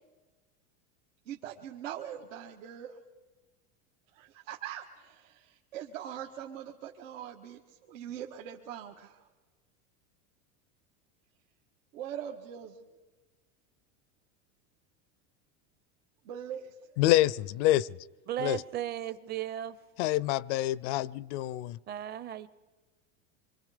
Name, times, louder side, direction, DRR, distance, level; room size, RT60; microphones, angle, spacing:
voice 1, 1.3-3.0 4.1-9.2 11.9-12.8 16.3-16.7, right 10 dB, 85° right, 1.7 m, -42 dB
voice 2, 17.0-18.0 18.4-18.6 20.0-21.8, left 15 dB, 65° left, 0.6 m, -27 dB
voice 3, 18.3-19.8 21.9-22.5, right 11 dB, 25° right, 0.7 m, -35 dB
26.0 x 24.5 x 5.0 m
supercardioid pair, 155°, 38 cm